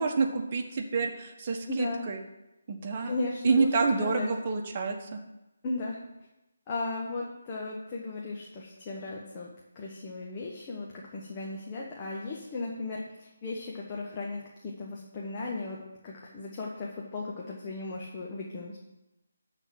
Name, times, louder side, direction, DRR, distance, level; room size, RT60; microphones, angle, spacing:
voice 1, 0.0-2.2 2.7-3.1 3.4-5.2, right 4 dB, 35° right, 3 dB, 1.4 m, -28 dB
voice 2, 1.7-2.0 3.0-4.3 5.6-6.0 6.7-9.5 9.7-15.8 16.0-18.8, left 3 dB, 25° left, -3 dB, 1.4 m, -36 dB
12.5 x 4.1 x 7.7 m, 0.96 s
figure-of-eight pair, 150°, 0 cm